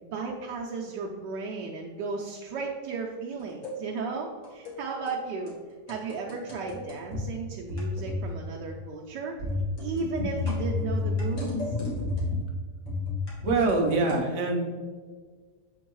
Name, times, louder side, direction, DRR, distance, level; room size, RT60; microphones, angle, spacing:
voice 1, 0.1-5.5 5.9-9.4 9.8-11.7, right 4 dB, 85° right, -1 dB, 1.3 m, -34 dB
sound 1, 3.4-3.7 4.4-4.8 5.0-5.2 5.5-5.6 5.9-7.2 7.7-8.3 8.5-8.8 9.4-12.5 12.9-14.2, left 3 dB, 50° left, 1.9 m, -31 dB
voice 2, 13.4-14.8, right 3 dB, 50° right, 1 dB, 1.1 m, -25 dB
7.2 x 4.4 x 3.0 m, 1.5 s
omnidirectional pair, 1.8 m